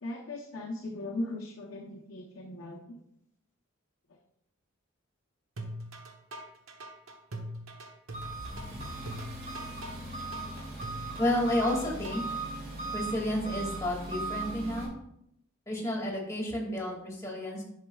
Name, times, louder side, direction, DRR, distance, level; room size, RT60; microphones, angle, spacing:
voice 1, 0.0-3.0 4.1-4.2, left 1 dB, 65° left, -2 dB, 0.8 m, -38 dB
sound 1, 5.6-12.4, right 1 dB, 80° right, 1.1 m, -42 dB
Engine, 8.1-14.9, right 2 dB, 45° right, 2.7 m, -38 dB
voice 2, 11.2-12.2 12.9-14.9 15.7-17.6, left 1 dB, 15° left, -3 dB, 2.2 m, -31 dB
10.0 x 6.5 x 2.3 m, 0.76 s
head